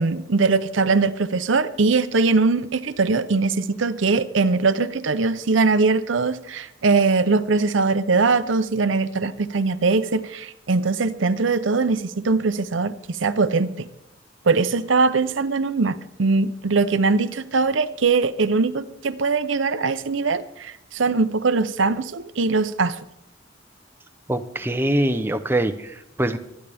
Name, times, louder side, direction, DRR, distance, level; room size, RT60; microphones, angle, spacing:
voice 1, 0.0-13.9 14.4-23.0, right 4 dB, 70° right, 13 dB, 0.7 m, -21 dB
voice 2, 24.3-26.4, right 1 dB, 10° right, 8 dB, 0.7 m, -23 dB
24.5 x 10.0 x 3.5 m, 0.84 s
head